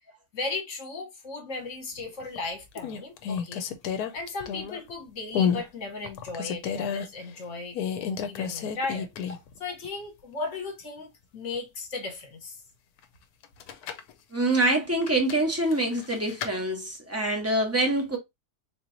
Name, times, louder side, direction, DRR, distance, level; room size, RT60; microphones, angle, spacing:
voice 1, 0.3-3.6 4.1-9.1 9.6-12.6, left 3 dB, 50° left, 1.4 m, -36 dB
sound 1, 2.0-2.4 2.8-4.9 5.3-5.7 6.0-7.1 7.7-9.5 9.8-9.9 13.4-14.1 15.0-16.5, left 7 dB, 75° left, 1.1 m, -31 dB
voice 2, 14.3-18.2, right 1 dB, 10° right, 0.8 m, -25 dB
4.0 x 2.9 x 2.6 m
omnidirectional pair, 1.7 m